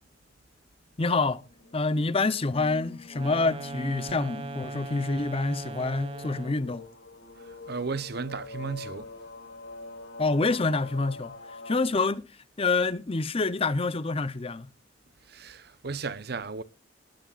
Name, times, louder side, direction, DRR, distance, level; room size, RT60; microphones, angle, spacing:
voice 1, 1.0-1.4 1.7-6.8 10.2-11.3 11.7-12.2 12.6-14.7, left 3 dB, 30° left, 0.7 m, -27 dB
sound 1, 1.5-11.8, left 2 dB, 85° left, 3.0 m, -45 dB
sound 2, 3.1-6.7, right 2 dB, 30° right, 1.8 m, -39 dB
voice 2, 7.4-9.1 15.3-16.6, right 4 dB, 60° right, 0.9 m, -35 dB
19.5 x 11.0 x 2.5 m
head